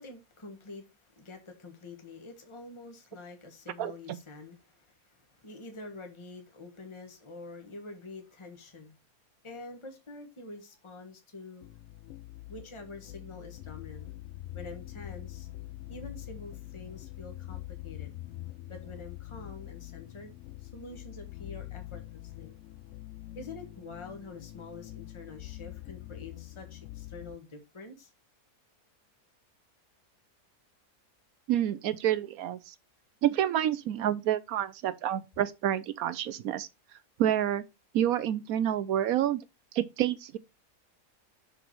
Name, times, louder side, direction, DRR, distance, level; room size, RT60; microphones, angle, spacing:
voice 1, 0.0-9.0 9.4-11.6 12.5-14.1 14.5-15.5 15.9-18.1 18.7-20.3 20.6-22.6 23.3-28.1, left 3 dB, 20° left, 1.3 m, -46 dB
voice 2, 3.8-4.2 31.5-32.7 33.2-36.7 37.2-37.6 37.9-39.4 39.7-40.4, right 11 dB, 70° right, 1.0 m, -28 dB
sound 1, 11.6-27.4, left 15 dB, 70° left, 0.8 m, -44 dB
6.0 x 5.1 x 4.6 m
omnidirectional pair, 1.7 m